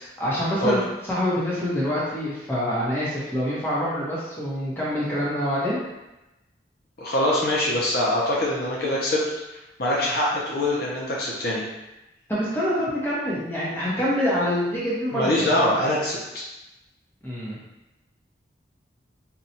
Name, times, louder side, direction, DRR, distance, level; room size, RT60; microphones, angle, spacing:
voice 1, 0.2-0.8 1.1-5.8 12.3-15.5 17.2-17.6, equal, 10° left, -8 dB, 0.9 m, -26 dB
voice 2, 7.0-9.2 9.8-11.6 15.1-16.4, left 1 dB, 55° left, -5 dB, 0.6 m, -23 dB
4.3 x 2.3 x 2.7 m, 0.97 s
head